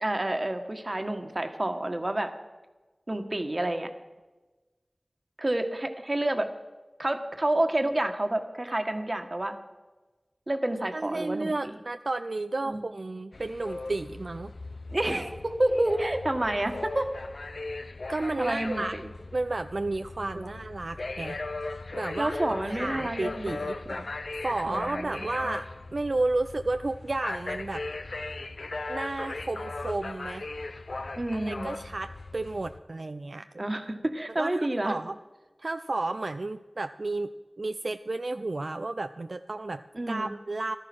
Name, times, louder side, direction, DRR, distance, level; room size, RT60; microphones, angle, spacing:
voice 1, 0.0-2.3 3.1-3.9 5.4-6.5 7.0-9.6 10.5-11.8 12.7-12.8 14.9-17.1 18.4-19.1 20.3-20.5 22.2-24.1 24.7-25.6 31.2-31.7 33.6-35.0 39.9-40.3, right 1 dB, 45° right, 7 dB, 1.6 m, -29 dB
voice 2, 10.9-14.5 18.1-18.9 19.3-21.4 21.9-22.4 22.7-23.8 24.4-27.8 28.9-30.5 31.3-33.5 34.4-35.2 35.6-40.8, right 2 dB, 75° right, 9 dB, 0.4 m, -32 dB
sound 1, 13.3-32.8, left 3 dB, 90° left, 0.6 m, -38 dB
14.5 x 12.5 x 6.2 m, 1.2 s
wide cardioid pair, 40°, 0 cm